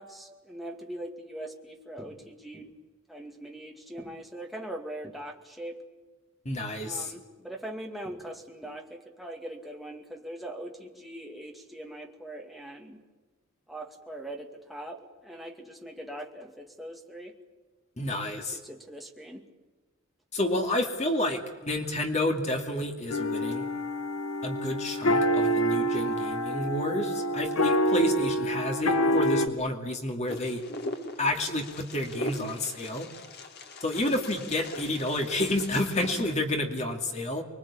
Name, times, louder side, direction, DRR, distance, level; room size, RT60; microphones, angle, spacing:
voice 1, 0.0-2.7 3.1-5.8 6.8-13.0 13.7-17.3 18.6-19.5, right 1 dB, ahead, 1 dB, 2.3 m, -41 dB
voice 2, 6.5-7.1 18.0-18.6 20.3-23.6 24.4-30.6 31.2-33.1 33.8-37.4, left 1 dB, 30° left, 4 dB, 2.4 m, -30 dB
sound 1, 23.1-29.4, equal, 85° left, 1.7 m, -26 dB
Wind, 30.3-36.3, left 1 dB, 50° left, 2.2 m, -40 dB
25.5 x 22.5 x 8.7 m, 1.3 s
head